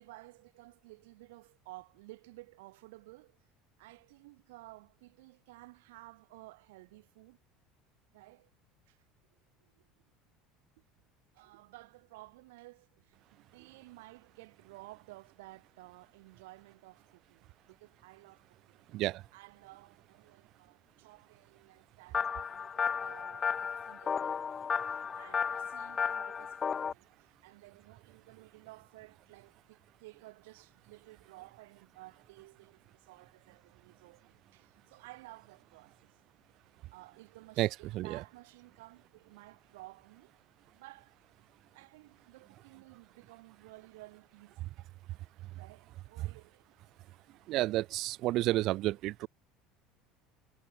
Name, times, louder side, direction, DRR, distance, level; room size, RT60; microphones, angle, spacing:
voice 1, 0.0-3.5 3.8-7.4 8.1-8.5 8.9-9.0 9.6-10.1 11.3-18.8 19.3-36.1 36.9-40.4 40.7-41.2 41.7-44.7 45.5-46.8, right 21 dB, 85° right, 4.0 m, -55 dB
voice 2, 18.9-19.3 37.6-38.2 45.1-45.2 45.4-45.5 46.2-46.3 47.5-49.3, right 16 dB, 55° right, 0.4 m, -31 dB
sound 1, 22.1-26.9, left 6 dB, 30° left, 0.3 m, -34 dB
supercardioid pair, 115°, 0 cm